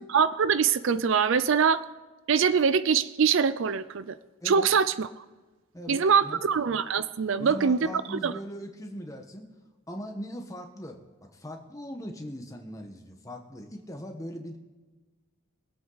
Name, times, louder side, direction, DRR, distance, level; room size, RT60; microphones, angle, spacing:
voice 1, 0.1-1.8 2.3-4.2 4.5-5.1 5.9-8.3, right 6 dB, 60° right, 15 dB, 0.4 m, -23 dB
voice 2, 4.4-4.7 5.7-6.4 7.4-9.6 9.9-14.6, equal, 15° left, 3 dB, 1.3 m, -40 dB
22.5 x 8.5 x 4.0 m, 1.2 s
head